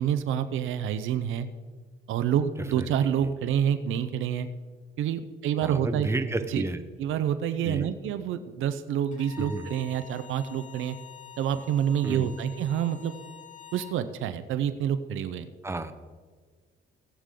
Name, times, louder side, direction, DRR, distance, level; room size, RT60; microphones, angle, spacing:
voice 1, 0.0-1.5 2.1-4.5 5.0-6.1 6.5-6.6 7.0-11.0 11.4-13.1 13.7-15.5, right 9 dB, 80° right, 11 dB, 0.7 m, -28 dB
voice 2, 5.6-6.8 7.6-7.9 9.4-9.7 12.0-12.4 15.6-15.9, right 2 dB, 15° right, 9 dB, 0.9 m, -31 dB
Bowed string instrument, 9.1-14.0, left 8 dB, 40° left, 3.2 m, -47 dB
18.5 x 8.2 x 3.8 m, 1.5 s
cardioid pair, 90°, 20 cm